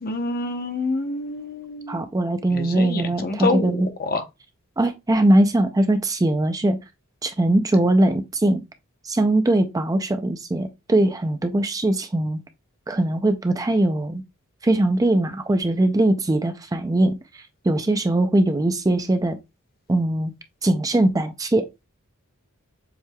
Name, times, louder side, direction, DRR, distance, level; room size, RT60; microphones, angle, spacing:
voice 1, 0.0-2.0 2.5-4.2, left 3 dB, 45° left, 0.8 m, -27 dB
voice 2, 1.9-3.9 4.8-6.8 7.2-8.6 9.0-12.4 12.9-14.2 14.6-17.2 17.6-19.4 19.9-20.3 20.6-21.7, right 1 dB, 15° right, 0.4 m, -21 dB
7.1 x 3.2 x 2.3 m
head